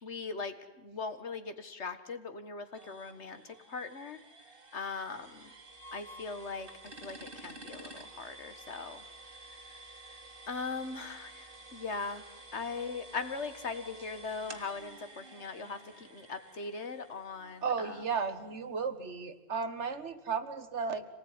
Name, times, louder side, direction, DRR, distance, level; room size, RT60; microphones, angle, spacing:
voice 1, 0.0-4.2 4.7-5.5 5.9-9.0 9.5-10.1 10.5-12.3 12.5-17.9, left 4 dB, 80° left, 10 dB, 1.9 m, -40 dB
sound 1, 2.7-18.4, right 2 dB, 55° right, 2.2 m, -51 dB
voice 2, 17.6-21.1, right 5 dB, 80° right, 10 dB, 1.8 m, -34 dB
26.5 x 19.0 x 9.7 m, 1.1 s
omnidirectional pair, 1.2 m